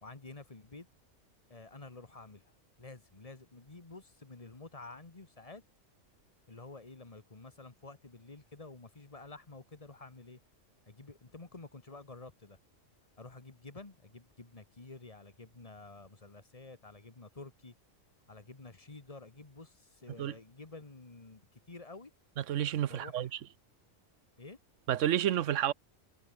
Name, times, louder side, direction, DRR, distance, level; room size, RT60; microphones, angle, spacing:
voice 1, 0.0-0.9 1.5-2.5 2.8-5.6 6.5-10.4 10.9-12.6 13.2-17.7 18.3-21.4 21.7-22.1 22.9-23.4 24.4-24.6, left 3 dB, 30° left, 1.7 m, -50 dB
voice 2, 22.4-23.3 24.9-25.7, right 11 dB, 75° right, 1.1 m, -30 dB
omnidirectional pair, 1.3 m